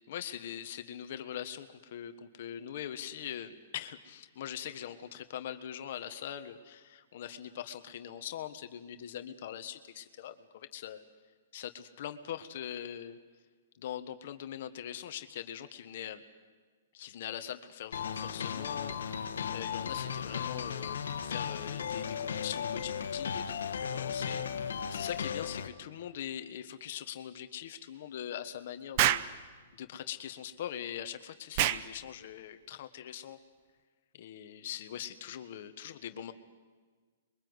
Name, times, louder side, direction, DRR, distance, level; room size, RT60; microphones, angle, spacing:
voice 1, 0.1-11.0 11.5-13.2 13.8-16.2 16.9-24.4 24.9-29.2 29.7-33.4 34.1-36.3, left 10 dB, 55° left, 8 dB, 1.4 m, -42 dB
sound 1, 17.9-25.7, left 7 dB, 90° left, 1.6 m, -36 dB
Explosion, 29.0-29.3 31.5-31.9, right 12 dB, 40° right, 0.8 m, -26 dB
26.0 x 23.0 x 8.0 m, 1.5 s
hypercardioid pair, 160°, 0 cm